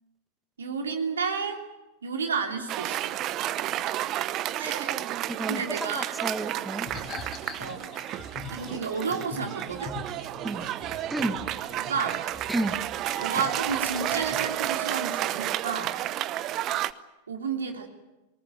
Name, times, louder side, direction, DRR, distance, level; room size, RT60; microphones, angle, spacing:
voice 1, 0.6-1.6 2.0-3.1 4.5-5.0 5.5-6.1 7.6-7.9 8.5-9.9 11.8-12.2 13.2-16.0 17.3-17.9, right 5 dB, 70° right, 4 dB, 2.9 m, -31 dB
Cheering / Applause, 2.7-16.9, right 13 dB, 35° right, 0.9 m, -31 dB
voice 2, 5.3-6.9 10.4-10.7 11.1-11.4 12.5-12.8, right 1 dB, 5° right, 9 dB, 2.1 m, -31 dB
sound 1, 6.9-14.5, left 4 dB, 30° left, 3.5 m, -43 dB
27.0 x 19.0 x 9.3 m, 1.1 s
figure-of-eight pair, 90°, 0 cm